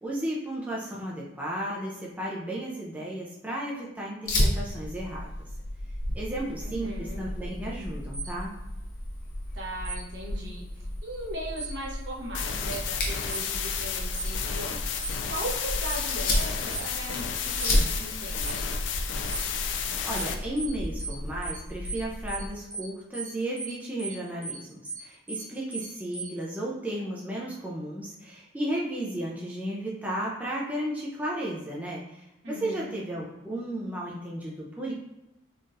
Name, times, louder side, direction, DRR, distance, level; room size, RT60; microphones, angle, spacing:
voice 1, 0.0-5.3 6.1-8.5 19.7-34.9, right 1 dB, 10° right, -4 dB, 0.4 m, -34 dB
Fire, 4.3-22.5, left 1 dB, 50° left, 0.7 m, -33 dB
voice 2, 6.6-7.2 9.5-18.6 32.4-32.9, right 1 dB, 70° right, -4 dB, 0.9 m, -38 dB
sound 1, 8.1-8.3 9.8-10.0 11.6-11.7 13.3-13.4 14.1-14.3 15.0-15.2 15.8-16.0 16.7-16.9 17.6-17.7 18.4-18.6 19.3-19.4 20.1-20.3 20.6-20.7 21.0-21.2 21.4-21.6 21.8-22.0 22.3-22.4 22.7-22.9 23.1-23.3 23.6-23.7 24.0-24.2 24.4-24.6 24.8-25.0 25.3-25.4 25.7-25.9 26.1-26.3, right 3 dB, 25° right, 1.1 m, -38 dB
sound 2, 12.3-20.3, left 7 dB, 75° left, 0.4 m, -32 dB
3.8 x 2.3 x 2.6 m, 0.96 s
head